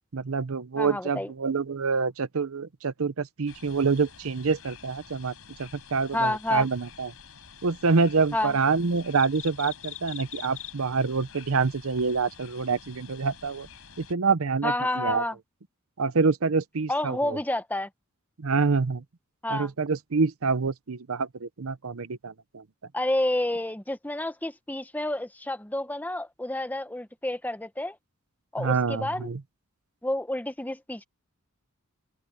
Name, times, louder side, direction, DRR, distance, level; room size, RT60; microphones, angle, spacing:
voice 1, 0.1-5.3 5.6-7.1 7.6-13.7 14.0-15.2 16.0-17.4 18.4-19.0 19.5-22.6 28.6-29.4, right 4 dB, 70° right, 0.7 m, -26 dB
voice 2, 0.8-1.3 6.1-6.7 8.3-8.6 14.6-15.3 16.9-17.9 19.4-19.7 22.9-28.0 28.5-29.3 30.0-31.0, left 1 dB, 10° left, 0.9 m, -29 dB
sound 1, 3.5-14.1, left 8 dB, 70° left, 6.3 m, -46 dB
open air
head